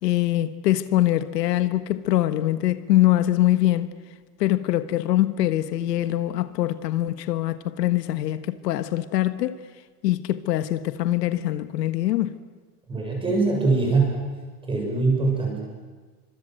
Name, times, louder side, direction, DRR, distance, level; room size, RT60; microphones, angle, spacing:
voice 1, 0.0-3.9 4.4-9.6 10.0-12.4, left 14 dB, 85° left, 1.5 m, -23 dB
voice 2, 12.9-14.2 14.7-15.6, right 3 dB, 10° right, 7.2 m, -22 dB
29.5 x 25.5 x 7.8 m
supercardioid pair, 170°, 48 cm